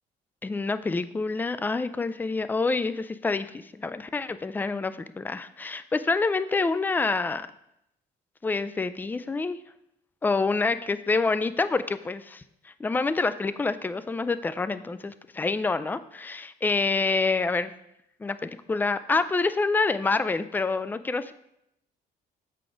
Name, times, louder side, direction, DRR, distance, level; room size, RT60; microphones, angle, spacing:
voice 1, 0.4-7.5 8.4-9.6 10.2-17.7 18.2-21.3, left 3 dB, 10° left, 13 dB, 0.3 m, -27 dB
7.8 x 4.8 x 3.8 m, 0.79 s
cardioid pair, 110°, 17 cm